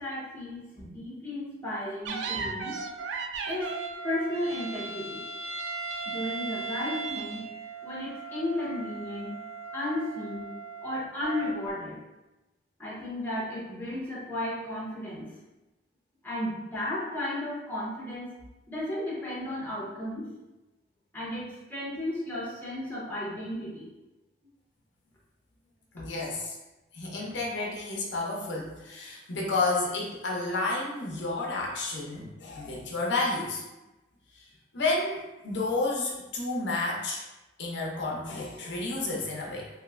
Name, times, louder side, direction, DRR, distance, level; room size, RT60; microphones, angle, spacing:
voice 1, 0.0-2.8 3.4-3.7 4.0-5.2 6.0-7.4 7.8-9.4 9.7-10.5 10.8-12.0 12.8-15.3 16.2-18.3 18.7-20.3 21.1-23.9, left 1 dB, 10° left, -7 dB, 0.8 m, -34 dB
sound 1, 2.1-11.7, right 4 dB, 80° right, 0.3 m, -37 dB
voice 2, 25.9-26.6 26.9-33.6 34.7-37.2 37.6-39.7, left 2 dB, 70° left, -2 dB, 0.6 m, -31 dB
3.0 x 2.7 x 2.4 m, 1.0 s
head